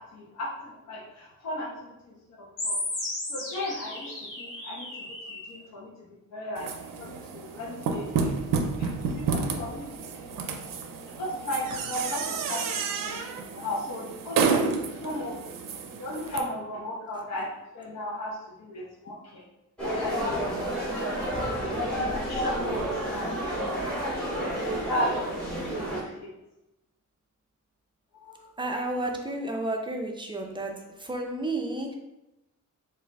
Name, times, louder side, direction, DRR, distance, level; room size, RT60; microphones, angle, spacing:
voice 1, 0.0-2.8 3.3-4.9 5.5-5.9 6.3-6.7 7.0-8.3 8.8-9.8 10.3-10.4 11.2-15.4 16.0-17.5 17.7-19.4 19.8-20.4 21.3-23.4 24.0-24.5 24.9-26.3 28.1-28.4, left 1 dB, 55° left, -4 dB, 0.9 m, -36 dB
sound 1, 2.6-5.6, left 2 dB, 80° left, 1.5 m, -34 dB
sound 2, 6.6-16.4, right 5 dB, 85° right, 0.5 m, -30 dB
voice 2, 17.1-17.4 28.6-30.7 31.0-31.9, right 2 dB, 15° right, 1 dB, 0.5 m, -32 dB
sound 3, 19.8-26.0, right 1 dB, 5° left, 1.1 m, -30 dB
4.2 x 2.5 x 3.6 m, 0.92 s
wide cardioid pair, 150°, 32 cm